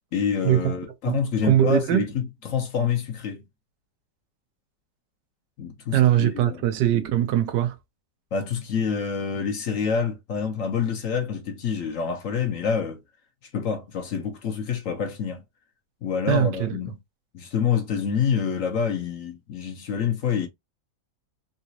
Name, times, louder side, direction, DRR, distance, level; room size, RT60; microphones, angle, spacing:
voice 1, 0.1-3.4 5.6-6.6 8.3-13.0 13.5-15.4 16.0-16.9 17.3-20.5, left 6 dB, 60° left, 1.0 m, -27 dB
voice 2, 1.1-2.0 5.9-7.8 16.3-16.8, right 11 dB, 90° right, 1.3 m, -21 dB
4.0 x 2.3 x 2.7 m
omnidirectional pair, 1.8 m